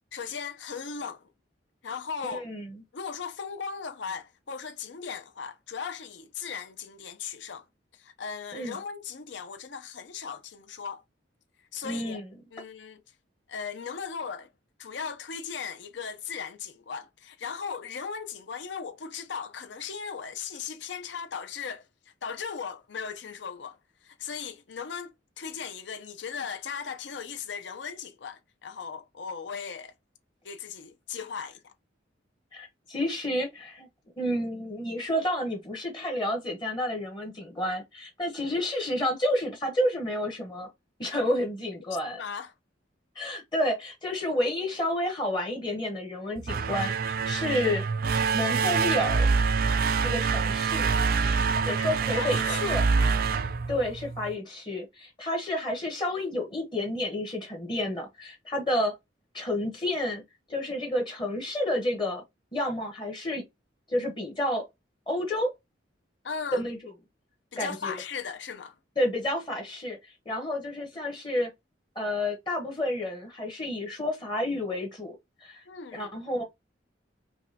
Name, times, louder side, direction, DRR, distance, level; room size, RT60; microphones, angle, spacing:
voice 1, 0.1-1.3 1.8-2.5 2.9-7.6 8.0-11.0 11.7-12.2 12.5-13.0 13.5-14.5 14.8-21.8 22.2-23.8 24.0-29.9 30.4-31.7 42.2-42.5 51.1-51.5 52.2-53.1 66.2-66.6 67.5-68.8 75.7-76.1, left 6 dB, 65° left, 0.6 m, -37 dB
voice 2, 2.2-2.8 8.5-8.8 11.8-12.3 32.5-33.9 34.2-40.7 41.0-42.2 43.2-47.8 48.3-49.3 50.0-50.9 51.6-52.9 53.7-59.0 59.3-60.2 60.5-62.2 62.5-63.4 63.9-64.6 65.1-65.5 66.5-66.9 67.6-68.0 69.0-71.5 72.0-75.1 75.4-75.6 75.9-76.4, left 1 dB, 25° left, 1.0 m, -30 dB
sound 1, 46.4-54.3, right 5 dB, 55° right, 0.4 m, -26 dB
5.3 x 2.3 x 2.7 m
head